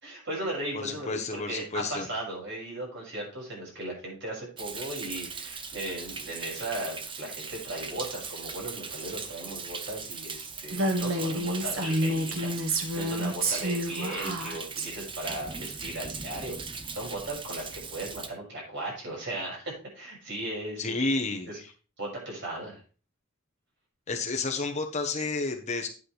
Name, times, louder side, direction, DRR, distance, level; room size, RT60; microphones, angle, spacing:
voice 1, 0.0-16.6 16.9-21.0 21.5-21.6 22.0-22.8, right 1 dB, 60° right, -2 dB, 6.3 m, -37 dB
voice 2, 0.7-2.1 20.8-21.7 24.1-25.9, left 3 dB, 35° left, 4 dB, 1.1 m, -31 dB
Thunder, 4.6-18.3, right 5 dB, 25° right, 0.9 m, -39 dB
Female speech woman speaking, 10.7-14.9, right 1 dB, 80° right, 1.5 m, -29 dB
9.6 x 8.7 x 3.4 m, 0.37 s
head